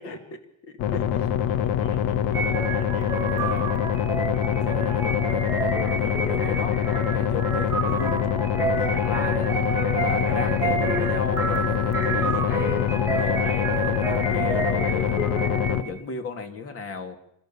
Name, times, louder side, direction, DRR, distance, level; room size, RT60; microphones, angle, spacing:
voice 1, 0.0-1.4 1.7-1.8 3.4-3.8 4.4-5.5 6.0-8.2 8.8-9.5 10.0-15.3 15.7-17.2, left 4 dB, 40° left, 7 dB, 2.7 m, -35 dB
sound 1, 0.8-15.8, left 9 dB, 85° left, 1.6 m, -25 dB
voice 2, 0.9-3.4 3.9-5.0 8.9-9.6, left 4 dB, 65° left, 4 dB, 6.8 m, -45 dB
sound 2, 2.3-16.0, right 4 dB, 5° right, 2.4 m, -29 dB
26.0 x 20.5 x 7.1 m, 0.76 s
cardioid pair, 155°, 37 cm